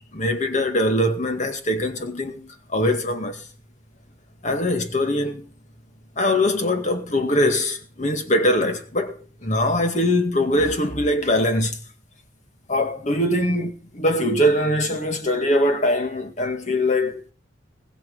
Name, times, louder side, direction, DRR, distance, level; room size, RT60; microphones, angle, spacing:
voice 1, 0.1-3.4 4.4-5.5 6.2-11.8 12.7-17.2, left 1 dB, 40° left, 2.0 m, -22 dB
20.5 x 7.3 x 5.6 m
head